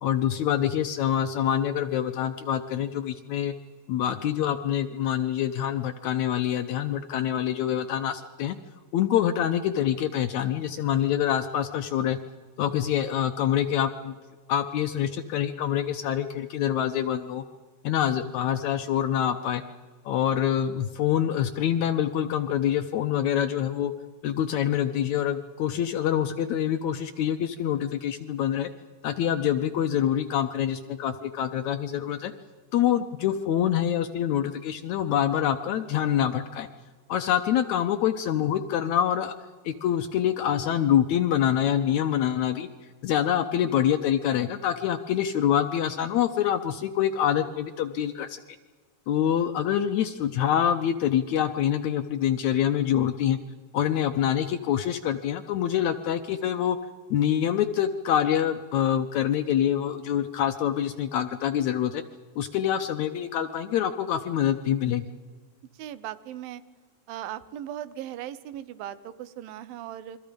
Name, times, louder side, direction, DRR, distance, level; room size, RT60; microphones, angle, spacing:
voice 1, 0.0-3.5 3.9-8.6 8.9-12.2 12.6-14.2 14.5-17.4 17.8-19.6 20.1-23.9 24.2-28.7 29.0-32.3 32.7-36.7 37.1-39.3 39.7-42.7 43.0-48.4 49.1-53.4 53.7-56.8 57.1-62.0 62.4-65.1, left 10 dB, 75° left, 9 dB, 1.8 m, -26 dB
voice 2, 65.7-66.6 67.1-70.2, right 11 dB, 90° right, 14 dB, 2.7 m, -38 dB
28.5 x 23.0 x 5.2 m, 1.4 s
omnidirectional pair, 4.0 m